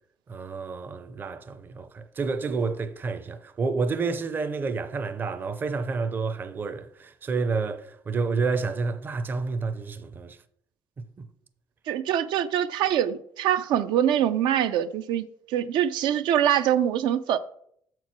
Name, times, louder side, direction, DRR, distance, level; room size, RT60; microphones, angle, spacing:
voice 1, 0.3-10.4 11.2-11.3, right 4 dB, 25° right, 0.5 m, -29 dB
voice 2, 11.9-17.4, right 10 dB, 75° right, 0.4 m, -24 dB
7.3 x 4.5 x 5.9 m
cardioid pair, 150°, 8 cm